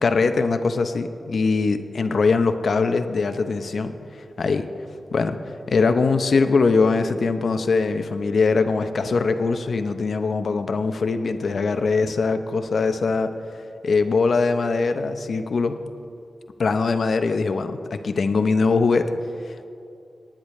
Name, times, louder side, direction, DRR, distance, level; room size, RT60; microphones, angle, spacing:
voice 1, 0.0-3.9 4.4-4.7 5.1-5.4 5.7-13.3 13.8-15.8 16.6-19.1, left 4 dB, 70° left, 8 dB, 0.7 m, -22 dB
19.0 x 10.0 x 3.2 m, 2.6 s
wide cardioid pair, 105°, 0 cm